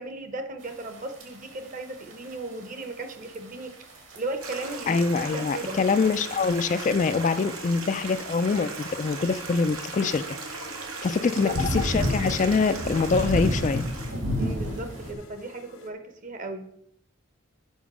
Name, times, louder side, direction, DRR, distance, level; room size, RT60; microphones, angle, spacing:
voice 1, 0.0-3.7 4.1-5.8 11.2-11.6 14.4-16.7, right 2 dB, 40° right, 8 dB, 0.9 m, -36 dB
sound 1, 0.6-15.1, equal, 65° right, 2.1 m, -34 dB
Stream, 4.4-14.1, right 3 dB, 85° right, 1.6 m, -38 dB
voice 2, 4.9-10.2 11.0-13.9, left 4 dB, 35° left, 11 dB, 0.3 m, -24 dB
sound 2, 6.3-15.9, left 4 dB, 75° left, 1.2 m, -52 dB
7.2 x 5.5 x 6.1 m, 0.75 s
head